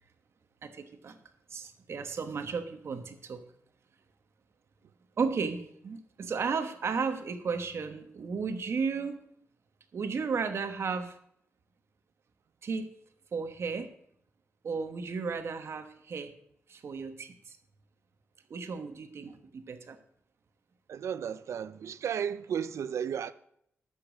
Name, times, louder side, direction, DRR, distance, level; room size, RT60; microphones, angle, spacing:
voice 1, 0.6-1.2 1.5-3.4 5.2-9.2 9.9-11.1 12.6-12.9 13.3-13.9 14.6-16.3 16.7-17.6 18.5-20.0, right 5 dB, 60° right, 1.2 m, -34 dB
voice 2, 20.9-23.3, right 8 dB, 80° right, 0.6 m, -34 dB
12.5 x 5.1 x 7.5 m
cardioid pair, 95°, 5 cm